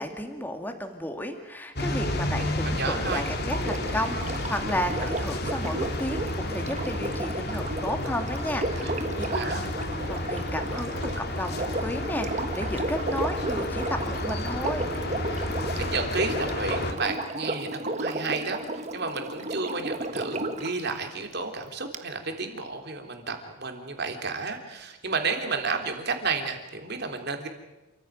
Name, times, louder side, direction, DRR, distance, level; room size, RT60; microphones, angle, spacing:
voice 1, 0.0-9.3 10.1-11.6 11.8-14.9, left 1 dB, 10° left, 5 dB, 2.3 m, -33 dB
sound 1, 1.8-16.9, left 1 dB, 50° left, 2.8 m, -31 dB
voice 2, 2.3-3.2 8.8-9.6 15.8-27.5, right 4 dB, 50° right, 4 dB, 3.5 m, -32 dB
Sink (filling or washing), 3.0-20.8 21.9-22.0, right 2 dB, 35° right, 1.5 m, -33 dB
28.5 x 15.0 x 9.3 m, 1.1 s
head